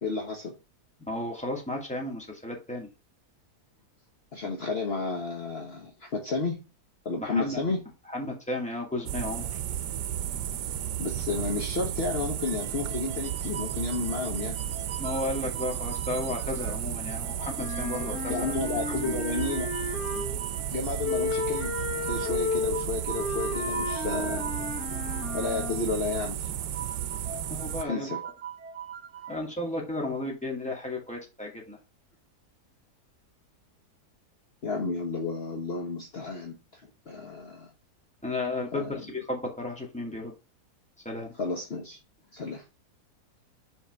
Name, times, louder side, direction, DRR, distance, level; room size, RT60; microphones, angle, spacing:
voice 1, 0.0-0.5 4.3-6.6 7.0-7.8 10.6-14.6 18.3-19.7 20.1-20.3 20.7-21.7 22.0-24.5 25.3-26.5 27.8-28.2 34.6-37.7 38.7-39.0 41.4-42.0 42.3-42.6, left 3 dB, 40° left, 1.2 m, -32 dB
voice 2, 1.1-2.9 7.2-7.6 8.1-9.6 15.0-18.4 18.9-19.2 27.5-28.1 29.3-31.8 38.2-40.3 41.0-41.3, left 2 dB, 5° left, 2.2 m, -33 dB
sound 1, 9.1-27.8, right 10 dB, 85° right, 1.3 m, -33 dB
sound 2, 12.4-16.8 17.0-29.4, right 7 dB, 60° right, 0.7 m, -43 dB
Wind instrument woodwind instrument, 17.6-20.5 21.0-25.9, left 4 dB, 65° left, 1.9 m, -33 dB
5.6 x 4.4 x 5.3 m
omnidirectional pair, 1.7 m